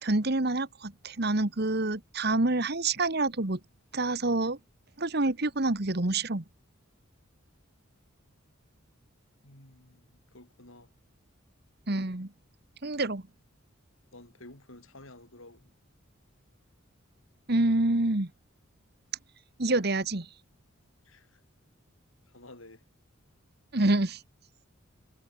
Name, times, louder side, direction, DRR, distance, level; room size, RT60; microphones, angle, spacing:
voice 1, 0.0-3.6 3.9-4.6 5.0-6.4 11.9-12.3 12.8-13.2 17.5-18.3 19.6-20.3 23.7-24.2, right 2 dB, 50° right, 1.6 m, -27 dB
voice 2, 9.4-10.9 14.1-15.7 21.0-21.4 22.3-22.9, left 2 dB, 75° left, 7.8 m, -52 dB
head